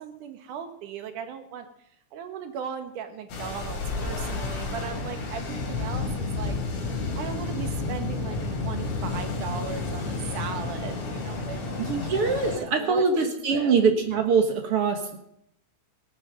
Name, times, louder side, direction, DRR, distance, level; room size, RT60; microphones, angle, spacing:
voice 1, 0.0-1.7 2.1-6.6 7.2-13.8, right 7 dB, 80° right, 8 dB, 2.9 m, -37 dB
sound 1, 3.3-12.6, left 3 dB, 60° left, 3.6 m, -31 dB
voice 2, 11.8-15.2, right 5 dB, 55° right, 6 dB, 2.0 m, -23 dB
17.5 x 9.1 x 6.4 m, 0.75 s
omnidirectional pair, 3.5 m